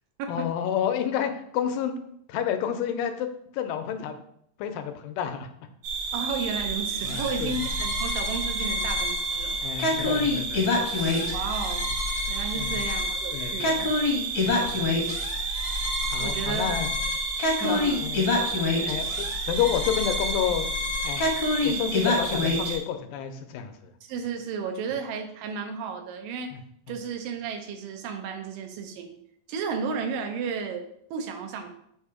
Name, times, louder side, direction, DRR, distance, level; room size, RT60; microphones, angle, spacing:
voice 1, 0.3-2.0 2.3-4.2 4.6-5.5 7.0-7.6 9.6-10.9 12.5-12.8 13.3-13.9 14.5-14.8 16.1-16.9 17.6-18.3 18.7-20.7 21.0-21.2 21.6-23.9 26.5-26.6 26.9-27.0, left 9 dB, 85° left, 7 dB, 2.3 m, -30 dB
sound 1, 5.8-22.8, right 4 dB, 70° right, 1.9 m, -32 dB
voice 2, 6.1-9.6 11.3-11.9 12.3-13.9 16.2-16.8 17.6-18.0 24.0-26.5 26.9-29.1 29.5-30.8 31.1-31.7, right 5 dB, 85° right, 4 dB, 2.3 m, -33 dB
sound 2, 7.0-22.7, left 3 dB, 65° left, 1.3 m, -28 dB
7.2 x 2.7 x 4.8 m, 0.71 s
omnidirectional pair, 3.9 m